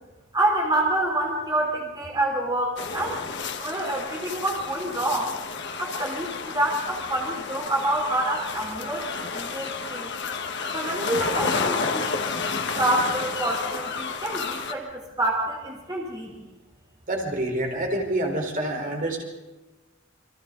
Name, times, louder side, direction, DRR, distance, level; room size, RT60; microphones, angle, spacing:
voice 1, 0.3-3.2 3.6-5.3 5.8-10.1 10.7-12.1 12.7-16.3, right 1 dB, 20° right, -1 dB, 3.8 m, -27 dB
sound 1, 2.8-14.7, left 4 dB, 60° left, 1.7 m, -31 dB
voice 2, 17.1-19.2, right 1 dB, 45° right, 1 dB, 4.6 m, -27 dB
29.0 x 25.5 x 4.0 m, 1.2 s
head